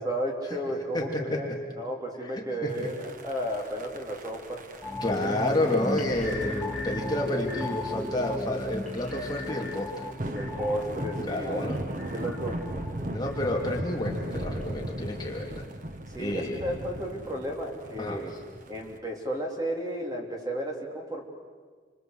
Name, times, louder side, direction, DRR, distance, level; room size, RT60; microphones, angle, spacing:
voice 1, 0.0-1.5 1.8-4.6 10.3-11.6 11.9-12.6 16.1-18.3 18.7-21.2, equal, 20° right, 0 dB, 3.5 m, -33 dB
voice 2, 0.9-1.4 2.2-2.9 5.0-10.1 11.3-11.8 13.1-15.6 16.2-16.6 18.0-18.2, left 1 dB, 20° left, -1 dB, 2.8 m, -30 dB
sound 1, 2.7-19.0, right 1 dB, 45° right, 1.4 m, -39 dB
sound 2, 4.8-14.1 14.5-14.6, left 1 dB, ahead, 2.7 m, -36 dB
28.5 x 25.5 x 7.9 m, 1.5 s
head